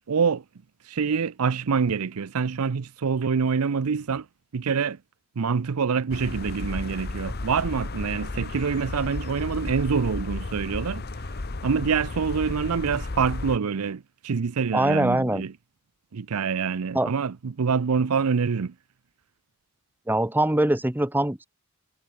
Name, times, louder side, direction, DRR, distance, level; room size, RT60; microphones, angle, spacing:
voice 1, 0.1-0.4 0.9-4.3 4.5-5.0 5.4-11.0 11.6-15.5 16.1-18.7, right 5 dB, 85° right, 0.6 m, -26 dB
sound 1, 6.1-13.6, left 2 dB, 45° left, 0.9 m, -33 dB
voice 2, 14.7-15.4 16.9-17.1 20.1-21.5, right 1 dB, 10° right, 0.9 m, -23 dB
head